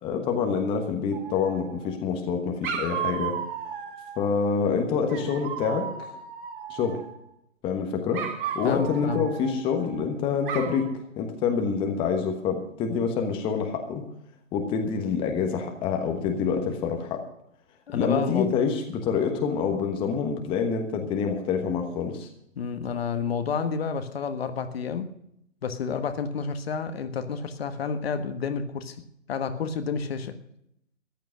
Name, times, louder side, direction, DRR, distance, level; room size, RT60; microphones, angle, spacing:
voice 1, 0.0-3.4 4.2-6.1 6.7-7.0 7.6-8.2 8.5-14.0 14.5-17.2 17.9-22.3, left 6 dB, 15° left, 4 dB, 1.2 m, -27 dB
Dog, 1.1-2.0 2.6-4.3 5.1-7.2 8.1-10.0 10.5-10.9, right 8 dB, 40° right, 2.8 m, -35 dB
voice 2, 8.6-9.2 17.9-18.6 22.5-25.1 25.6-29.0 29.3-30.4, left 6 dB, 50° left, 9 dB, 1.4 m, -30 dB
14.0 x 11.0 x 6.2 m, 0.75 s
hypercardioid pair, 145°, 40 cm